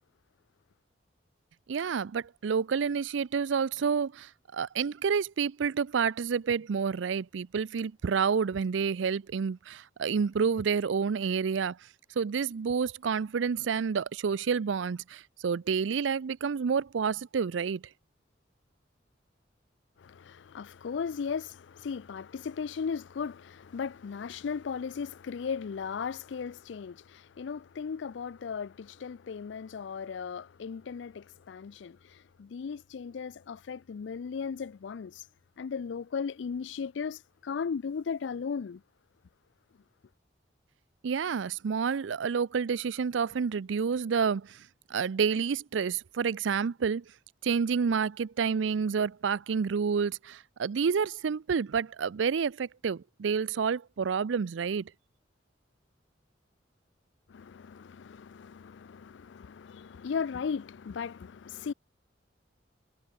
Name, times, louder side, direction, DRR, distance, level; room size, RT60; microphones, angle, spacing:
voice 1, 1.7-11.8 12.2-17.8 41.0-44.6 44.9-47.0 47.4-54.9, right 6 dB, 80° right, 0.4 m, -29 dB
voice 2, 20.0-35.2 35.6-38.8 57.3-61.7, left 6 dB, 75° left, 0.4 m, -37 dB
head